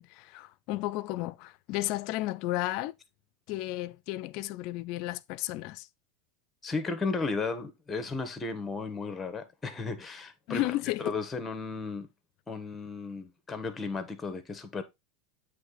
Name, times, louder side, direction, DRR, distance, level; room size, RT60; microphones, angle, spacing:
voice 1, 0.0-2.9 3.5-5.9 10.5-11.1, left 17 dB, 55° left, 0.4 m, -33 dB
voice 2, 6.6-10.6 11.0-12.1 12.5-14.8, left 4 dB, 15° left, 1.1 m, -34 dB
8.0 x 3.3 x 3.9 m
supercardioid pair, 120°, 0 cm